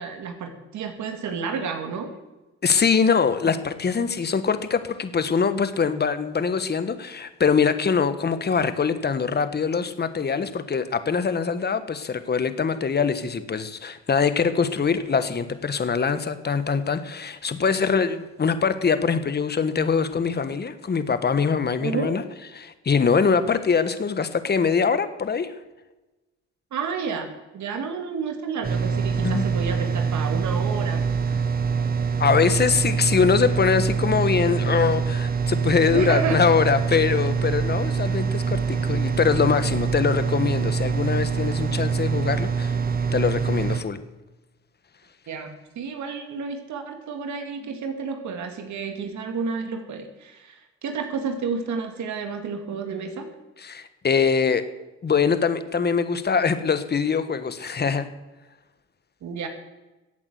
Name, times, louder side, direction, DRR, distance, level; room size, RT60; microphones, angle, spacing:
voice 1, 0.0-2.1 21.8-22.1 26.7-27.3 27.5-31.0 35.9-36.4 45.3-53.3 59.2-59.5, right 5 dB, 70° right, 6 dB, 2.3 m, -30 dB
voice 2, 2.6-22.2 22.5-25.5 29.2-29.4 32.2-42.8 43.1-44.0 53.6-54.6 55.0-58.1, left 5 dB, 35° left, 11 dB, 1.3 m, -23 dB
sound 1, 28.6-43.8, right 5 dB, 30° right, 1.3 m, -25 dB
15.0 x 8.5 x 8.0 m, 1.1 s
cardioid pair, 90°, 30 cm